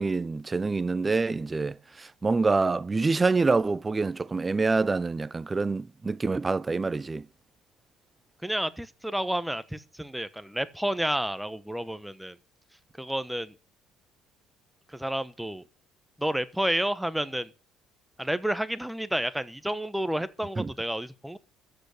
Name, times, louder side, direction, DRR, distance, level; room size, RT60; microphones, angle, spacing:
voice 1, 0.0-7.3 20.6-20.7, right 3 dB, 25° right, 0.6 m, -26 dB
voice 2, 8.4-12.4 12.9-13.5 14.9-15.6 16.2-17.5 18.2-21.4, right 1 dB, 5° right, 1.1 m, -30 dB
13.5 x 8.0 x 6.6 m
supercardioid pair, 75°, 0 cm